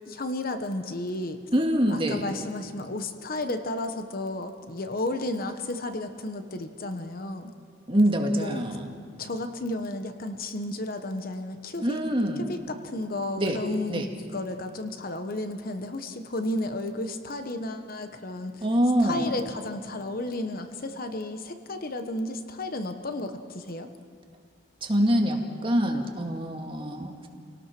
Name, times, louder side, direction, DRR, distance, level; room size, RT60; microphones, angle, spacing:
voice 1, 0.0-1.4 1.9-7.5 8.3-8.6 9.2-12.0 12.4-18.7 19.0-23.9, left 2 dB, 45° left, 7 dB, 1.2 m, -33 dB
voice 2, 1.5-2.2 7.9-8.8 11.8-12.5 13.4-13.6 13.9-14.1 18.6-19.3 24.8-27.3, equal, 25° right, 2 dB, 2.0 m, -25 dB
29.0 x 18.5 x 6.0 m, 2.2 s
head